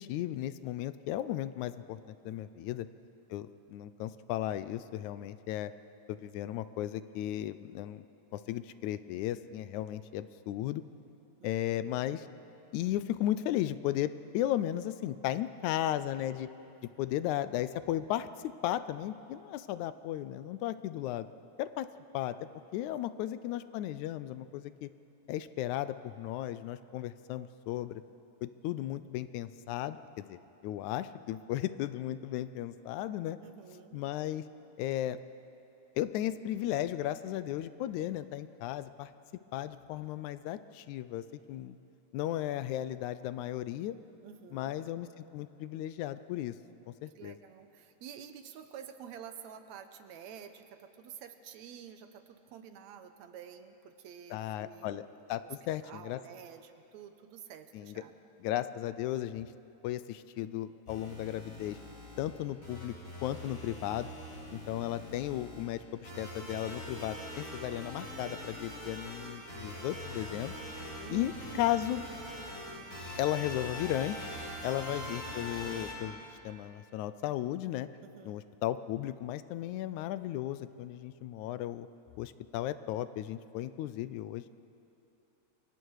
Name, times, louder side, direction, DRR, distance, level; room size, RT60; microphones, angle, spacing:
voice 1, 0.0-2.0 2.3-2.9 3.3-5.7 6.1-8.0 8.3-10.8 11.4-12.3 12.7-16.5 17.0-21.3 21.6-21.9 22.1-22.4 22.7-24.9 25.3-28.0 28.4-33.4 33.9-34.4 34.8-35.2 36.0-39.1 39.5-41.8 42.1-44.0 44.5-45.1 45.3-46.6 46.9-47.4 54.3-56.2 57.7-58.0 58.4-59.5 59.8-61.8 62.2-62.9 63.2-64.1 64.5-70.5 71.1-71.3 71.6-72.0 73.2-74.3 74.6-77.9 78.2-81.9 82.2-84.5, left 13 dB, 80° left, 14 dB, 2.0 m, -35 dB
voice 2, 2.2-2.7 11.4-11.5 23.1-23.3 33.4-34.0 44.2-44.7 47.2-55.0 55.4-55.6 55.8-58.1 62.1-62.3 64.5-65.2 71.0-71.7 74.6-74.7 78.0-78.4, right 8 dB, 75° right, 8 dB, 2.1 m, -50 dB
sound 1, 60.9-75.9, equal, 25° left, 4.9 m, -43 dB
29.0 x 23.5 x 4.8 m, 2.8 s
omnidirectional pair, 3.4 m